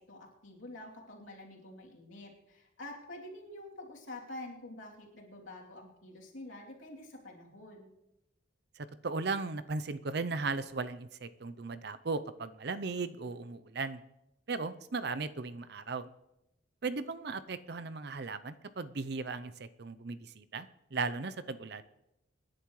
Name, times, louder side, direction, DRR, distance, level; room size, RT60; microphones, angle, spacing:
voice 1, 0.0-7.9, left 1 dB, 90° left, -3 dB, 3.1 m, -47 dB
voice 2, 8.8-14.0 14.5-16.1 16.8-21.8, right 4 dB, 55° right, 12 dB, 0.6 m, -37 dB
26.0 x 10.5 x 3.2 m, 0.90 s
head